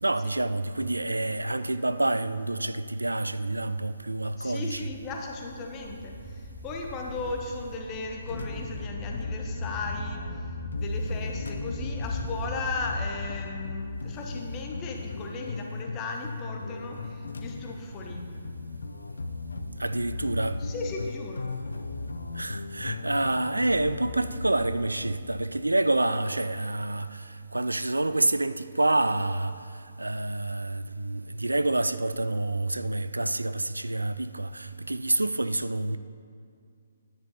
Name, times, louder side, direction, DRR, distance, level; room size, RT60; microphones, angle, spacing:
voice 1, 0.0-4.9 19.8-20.6 22.3-29.5 30.0-36.0, right 2 dB, 80° right, 0.3 m, -28 dB
voice 2, 4.4-18.3 20.6-21.5, left 4 dB, 20° left, 1.2 m, -37 dB
sound 1, 4.8-13.3, equal, ahead, 1.5 m, -40 dB
sound 2, 8.2-25.2, left 3 dB, 65° left, 0.6 m, -36 dB
10.5 x 9.9 x 4.1 m
figure-of-eight pair, 130°, 0 cm